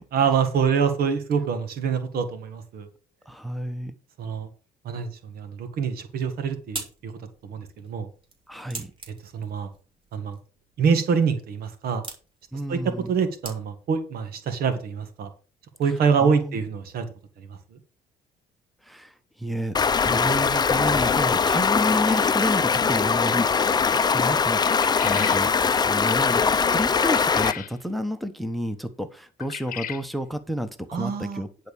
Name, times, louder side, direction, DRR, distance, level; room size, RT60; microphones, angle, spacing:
voice 1, 0.1-2.9 4.2-4.5 4.8-7.1 7.4-8.1 9.3-9.7 10.1-10.4 10.8-12.0 12.7-12.8 13.1-15.3 15.8-17.0 17.4-17.8 30.9-31.4, right 6 dB, 65° right, 9 dB, 1.7 m, -25 dB
voice 2, 3.3-3.9 8.5-8.9 12.5-13.1 16.2-16.6 18.8-19.8 20.0-24.6 25.0-31.7, equal, ahead, 10 dB, 1.0 m, -30 dB
sound 1, 6.1-14.0, right 3 dB, 30° right, 3.5 m, -44 dB
Stream, 19.7-27.5, left 5 dB, 25° left, 0.6 m, -21 dB
sound 2, 24.7-25.5 27.0-27.7 29.4-30.0, left 10 dB, 55° left, 1.0 m, -34 dB
10.5 x 4.6 x 7.0 m, 0.37 s
cardioid pair, 110°, 17 cm